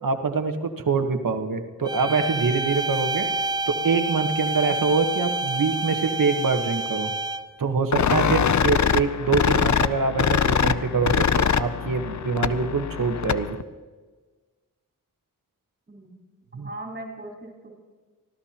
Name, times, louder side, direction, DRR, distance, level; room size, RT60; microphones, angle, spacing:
voice 1, 0.0-3.3 3.7-7.1 7.6-13.6 16.5-16.7, right 4 dB, 85° right, 6 dB, 1.3 m, -25 dB
sound 1, 1.9-7.6, right 2 dB, 15° right, 0.6 m, -28 dB
sound 2, 7.9-13.6, left 7 dB, 60° left, 0.6 m, -23 dB
voice 2, 16.5-17.7, right 1 dB, 30° right, 0 dB, 4.2 m, -39 dB
24.0 x 16.0 x 2.9 m, 1.4 s
wide cardioid pair, 100°, 33 cm